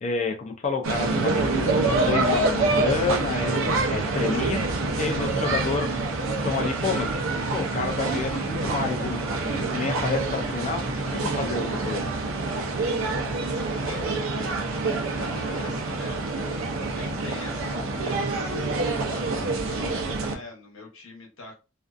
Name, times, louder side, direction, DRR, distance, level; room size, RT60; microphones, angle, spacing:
voice 1, 0.0-5.9 6.4-7.2 7.5-12.1, left 4 dB, 35° left, 3 dB, 0.3 m, -29 dB
sound 1, 0.8-20.3, right 3 dB, 85° right, 0.5 m, -26 dB
voice 2, 5.2-5.8 12.8-21.6, left 2 dB, 85° left, 0 dB, 0.9 m, -44 dB
2.5 x 2.2 x 2.4 m, 0.30 s
head